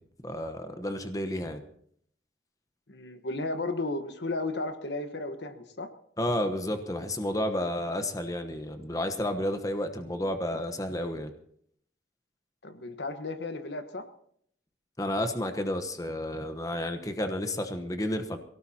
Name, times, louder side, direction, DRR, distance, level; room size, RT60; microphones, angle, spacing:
voice 1, 0.2-1.6 6.2-11.3 15.0-18.4, left 1 dB, 20° left, 7 dB, 1.1 m, -31 dB
voice 2, 2.9-5.9 12.6-14.0, left 2 dB, 85° left, 8 dB, 1.3 m, -34 dB
23.0 x 17.5 x 2.9 m, 0.66 s
head